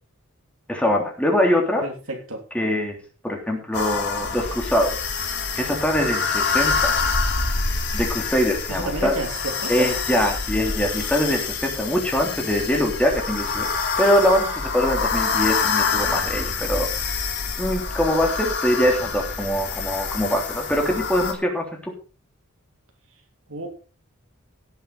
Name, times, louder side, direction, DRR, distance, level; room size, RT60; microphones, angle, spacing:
voice 1, 0.7-1.8 2.5-3.0 3.2-5.0 5.5-6.9 7.9-9.1 9.7-13.7 14.0-16.9 17.6-21.9, equal, 5° left, 3.4 m, -23 dB
voice 2, 1.8-2.5 8.7-9.7 23.5-23.7, right 1 dB, 70° right, 3.0 m, -31 dB
sound 1, 3.7-21.3, left 5 dB, 55° left, 3.1 m, -26 dB
17.0 x 8.2 x 4.2 m
head